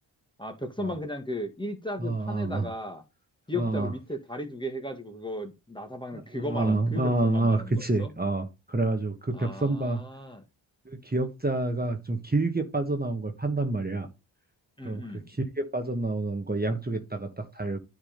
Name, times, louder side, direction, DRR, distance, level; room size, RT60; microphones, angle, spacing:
voice 1, 0.4-3.0 3.5-8.1 9.3-10.4 14.8-15.4, left 1 dB, 10° left, 1.7 m, -36 dB
voice 2, 2.0-2.7 3.6-3.9 6.1-10.0 10.8-14.1 14.8-17.8, right 2 dB, 20° right, 1.4 m, -28 dB
9.9 x 3.7 x 5.2 m
cardioid pair, 50°, 47 cm